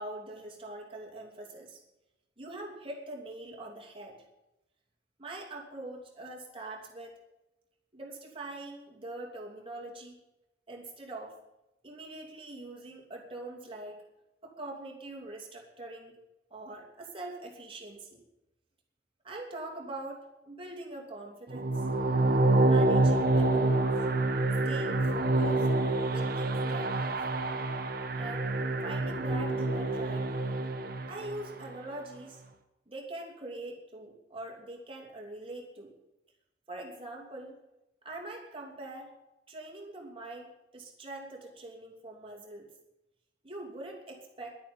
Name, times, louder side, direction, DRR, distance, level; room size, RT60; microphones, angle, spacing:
voice 1, 0.0-1.8 2.4-4.2 5.2-7.1 7.9-10.2 10.7-11.4 11.8-14.0 14.4-16.1 16.5-18.2 19.2-21.8 22.6-23.9 24.6-25.7 26.1-27.2 28.1-28.5 28.8-30.3 31.1-32.4 32.9-35.9 36.7-37.6 38.0-39.1 39.5-40.5 40.7-42.7 43.4-44.6, right 2 dB, 30° right, 0 dB, 2.9 m, -43 dB
sound 1, 21.5-31.6, right 2 dB, 55° right, 1.1 m, -27 dB
11.5 x 9.3 x 9.7 m, 0.93 s
head